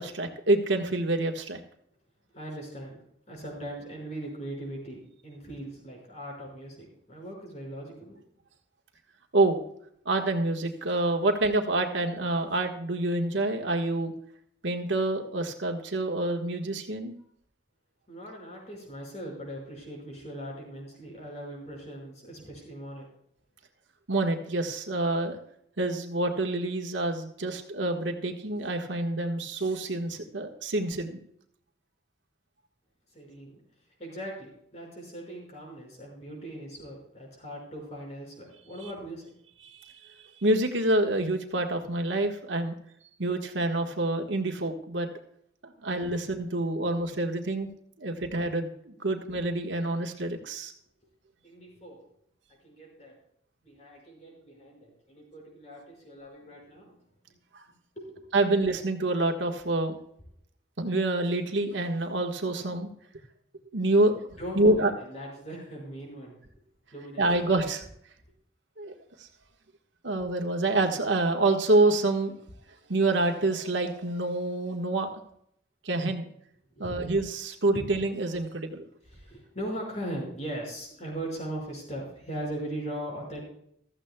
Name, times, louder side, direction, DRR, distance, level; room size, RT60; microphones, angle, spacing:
voice 1, 0.0-1.6 9.3-9.6 10.0-14.1 14.6-17.1 24.1-25.4 25.8-31.2 39.6-40.0 40.4-42.7 43.2-45.1 45.6-47.7 48.0-50.7 57.5-57.6 58.3-60.0 60.8-62.9 63.7-64.1 64.5-64.9 67.2-67.8 68.8-69.3 70.0-72.3 72.9-75.1 75.8-76.2 76.8-78.8, right 2 dB, 90° right, 4 dB, 1.5 m, -27 dB
voice 2, 2.3-3.0 3.3-8.2 18.1-23.1 33.1-33.6 34.0-39.3 51.4-52.0 52.6-53.2 53.6-57.0 58.0-58.3 64.4-66.4 66.9-67.5 76.7-77.0 77.8-77.9 79.1-83.4, right 1 dB, 40° left, -2 dB, 5.6 m, -39 dB
15.5 x 13.5 x 2.3 m, 0.69 s
head